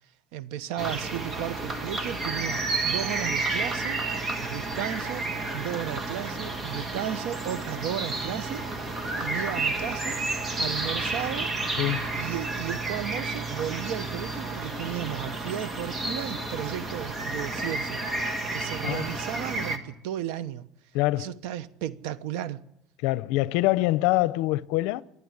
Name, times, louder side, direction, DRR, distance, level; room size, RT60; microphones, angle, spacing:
voice 1, 0.3-4.0 4.4-5.3 5.5-10.2 10.6-11.5 12.1-18.0 18.5-20.6 21.2-22.6, right 11 dB, 90° right, 1.0 m, -34 dB
sound 1, 0.8-19.8, right 3 dB, 20° right, 1.7 m, -31 dB
voice 2, 11.8-12.2 18.8-19.1 20.9-21.3 23.0-25.0, left 18 dB, 75° left, 0.7 m, -25 dB
26.0 x 11.0 x 9.8 m
cardioid pair, 155°, 0 cm